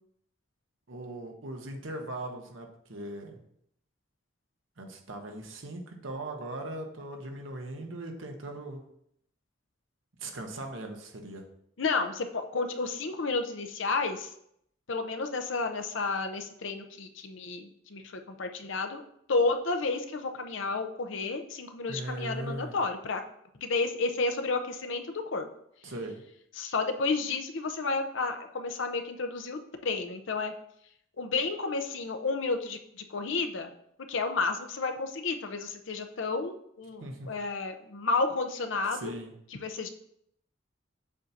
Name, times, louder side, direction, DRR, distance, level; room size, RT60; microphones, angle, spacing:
voice 1, 0.9-3.4 4.8-8.8 10.2-11.4 21.9-22.8 25.8-26.2 37.0-37.3 38.9-39.3, right 1 dB, 80° right, 3 dB, 1.1 m, -39 dB
voice 2, 11.8-14.3 14.9-19.0 19.3-23.2 23.6-25.5 26.6-30.5 31.2-33.7 34.1-39.1 39.5-39.9, left 3 dB, 70° left, 6 dB, 0.7 m, -31 dB
7.4 x 2.8 x 5.8 m, 0.72 s
head